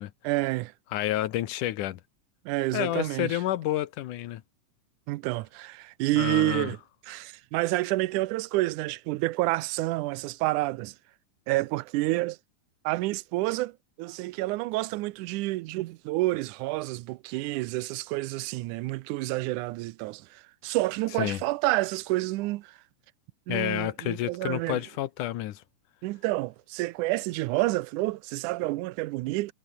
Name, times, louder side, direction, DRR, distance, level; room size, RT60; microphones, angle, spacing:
voice 1, 0.2-0.7 2.5-3.4 5.1-6.8 7.1-10.9 11.5-12.4 12.8-22.8 23.5-24.8 26.0-29.5, right 19 dB, 85° right, 2.2 m, -29 dB
voice 2, 0.9-2.0 2.7-4.4 6.2-6.7 21.2-21.4 23.5-25.6, left 14 dB, 85° left, 2.6 m, -29 dB
omnidirectional pair, 3.5 m